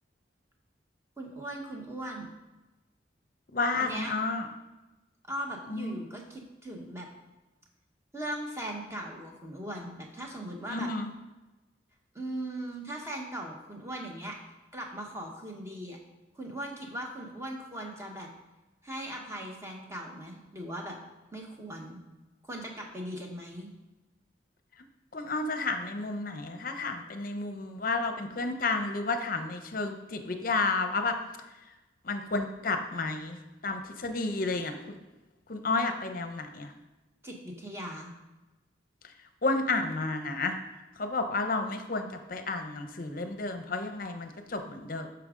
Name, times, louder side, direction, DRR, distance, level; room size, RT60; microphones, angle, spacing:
voice 1, 1.2-2.3 3.7-4.1 5.3-7.1 8.1-10.9 12.1-14.4 14.7-16.0 16.3-18.3 18.8-21.0 21.3-22.0 22.4-23.7 37.2-38.1, right 1 dB, 15° right, 0 dB, 1.0 m, -39 dB
voice 2, 3.5-4.5 5.7-6.0 10.7-11.1 25.1-31.2 32.0-35.0 35.5-36.7 39.4-40.6 41.0-45.1, left 3 dB, 50° left, 7 dB, 0.7 m, -31 dB
8.6 x 5.9 x 3.7 m, 1.1 s
head